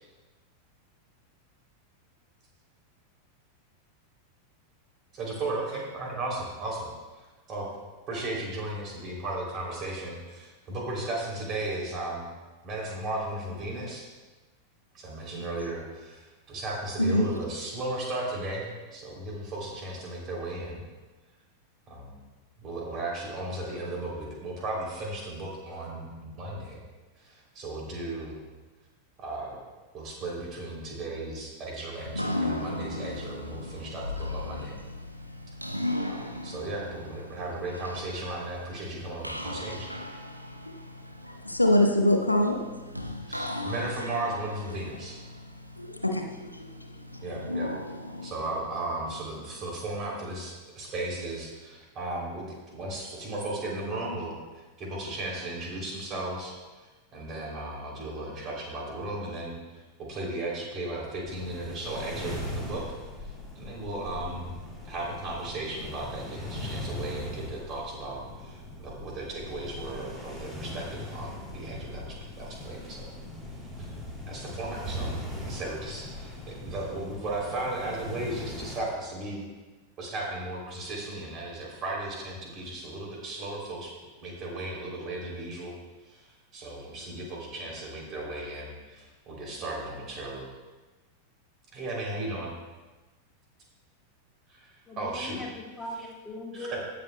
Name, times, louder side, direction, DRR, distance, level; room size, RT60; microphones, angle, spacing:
voice 1, 5.1-6.9 7.2-7.7 8.1-12.3 12.6-14.0 14.9-20.8 21.9-22.1 22.6-26.8 27.2-28.4 29.2-29.6 29.9-34.7 36.1-39.9 43.3-45.2 47.2-47.7 48.2-56.5 57.1-59.8 60.1-62.8 63.5-64.5 64.9-73.1 73.8-73.9 74.3-75.1 75.4-79.4 80.0-83.9 84.2-85.7 86.1-86.2 86.5-90.4 91.7-92.5 94.5-95.4 96.5-96.8, right 2 dB, 30° right, -2 dB, 3.0 m, -35 dB
sound 1, 31.9-49.8, left 1 dB, 90° right, 0.6 m, -37 dB
voice 2, 41.4-42.6 45.8-46.6, left 1 dB, 85° left, 3 dB, 0.9 m, -24 dB
sound 2, 61.3-78.8, left 1 dB, 10° right, 2.4 m, -39 dB
voice 3, 94.9-96.8, left 1 dB, 10° left, -2 dB, 1.8 m, -39 dB
17.0 x 7.0 x 2.2 m, 1.2 s
figure-of-eight pair, 90°, 0 cm